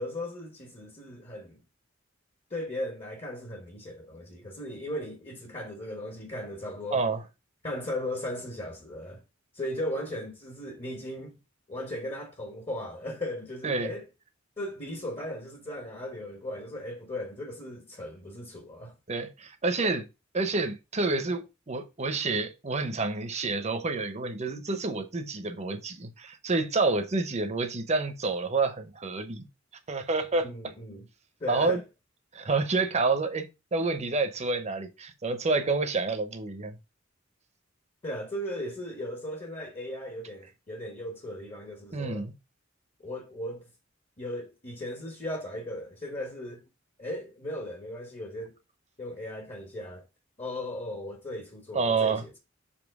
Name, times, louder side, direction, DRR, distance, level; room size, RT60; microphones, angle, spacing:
voice 1, 0.0-1.6 2.5-7.0 7.6-9.2 9.5-11.4 11.7-14.1 14.6-19.0 30.4-31.1 31.4-31.8 38.0-42.3 43.0-43.7 44.2-46.7 47.0-48.6 49.0-50.1 50.4-52.4, left 1 dB, 35° left, 1.2 m, -37 dB
voice 2, 6.9-7.2 13.6-13.9 19.1-20.1 20.3-29.5 29.9-30.5 31.5-31.8 32.3-36.8 41.9-42.3 51.7-52.2, right 3 dB, 35° right, 0.8 m, -28 dB
7.1 x 2.9 x 4.7 m
head